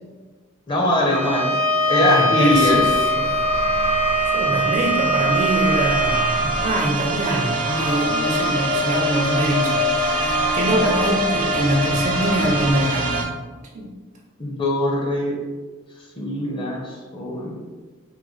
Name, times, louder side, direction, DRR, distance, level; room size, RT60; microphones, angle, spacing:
voice 1, 0.7-1.5 1.9-2.8 14.4-15.3 16.2-17.6, left 1 dB, 25° left, -1 dB, 0.5 m, -21 dB
Bowed string instrument, 1.0-6.4, equal, 70° left, 1.4 m, -21 dB
voice 2, 2.0-3.6 4.2-13.3 13.7-13.9, right 1 dB, 35° right, 0 dB, 0.4 m, -24 dB
sound 1, 2.5-12.7, left 3 dB, 85° left, 1.1 m, -27 dB
sound 2, 3.3-13.2, right 4 dB, 80° right, 0.6 m, -26 dB
3.6 x 2.1 x 3.1 m, 1.3 s
head